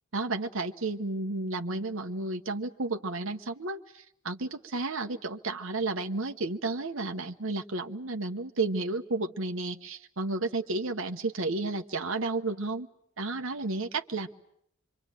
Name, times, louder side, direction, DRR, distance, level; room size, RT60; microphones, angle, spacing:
voice 1, 0.1-12.9 13.2-14.3, right 3 dB, 60° right, 5 dB, 1.1 m, -32 dB
25.5 x 24.5 x 9.1 m, 0.74 s
head